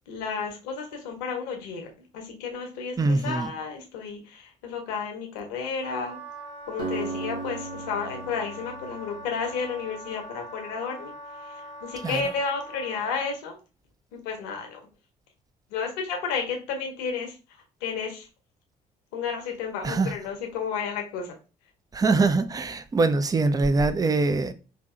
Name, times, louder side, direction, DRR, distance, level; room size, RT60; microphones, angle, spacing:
voice 1, 0.1-6.2 6.7-11.1 11.4-13.6 14.1-14.8 15.7-17.4 17.8-18.3 19.1-21.4, left 5 dB, 70° left, 0.9 m, -32 dB
voice 2, 3.0-3.5 12.0-12.2 19.8-20.1 21.9-24.5, right 3 dB, 20° right, 0.4 m, -23 dB
Wind instrument woodwind instrument, 5.8-13.4, right 1 dB, 65° right, 2.2 m, -42 dB
Acoustic guitar, 6.8-10.4, right 3 dB, 85° right, 0.6 m, -37 dB
5.0 x 2.7 x 2.3 m
figure-of-eight pair, 50°, 20 cm